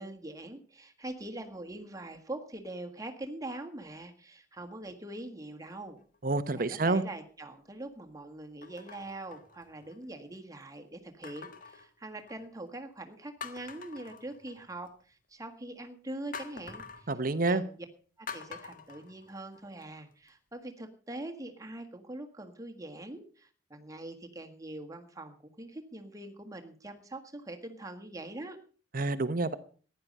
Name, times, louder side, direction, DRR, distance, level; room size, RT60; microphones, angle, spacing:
voice 1, 0.0-6.0 6.6-17.1 17.4-17.9 18.2-28.6, right 1 dB, 20° right, 4 dB, 1.7 m, -43 dB
sound 1, 5.7-6.2 6.9-7.0 8.6-10.1 11.2-12.6 13.0-13.1 13.4-14.9 16.3-17.1 18.3-19.8 20.3-20.4, left 5 dB, 50° left, 1.6 m, -46 dB
voice 2, 6.2-7.0 17.1-17.6 28.9-29.5, right 3 dB, 55° right, 13 dB, 0.9 m, -28 dB
15.0 x 10.5 x 5.4 m, 0.42 s
head